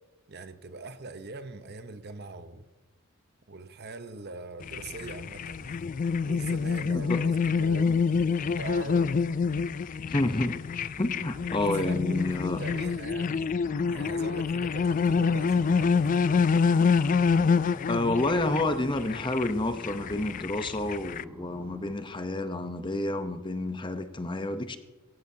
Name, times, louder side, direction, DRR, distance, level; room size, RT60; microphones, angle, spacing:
voice 1, 0.3-2.7 3.5-5.8 6.3-7.9 8.3-9.2 11.6-13.5 13.9-16.6, right 3 dB, 55° right, 0.8 m, -42 dB
sound 1, 4.6-21.2, left 5 dB, 40° left, 0.3 m, -27 dB
voice 2, 10.1-10.6 11.0-12.6 17.9-24.8, left 2 dB, 25° left, 0.8 m, -29 dB
sound 2, 11.3-22.4, right 1 dB, 10° right, 1.3 m, -50 dB
23.0 x 15.0 x 2.8 m
head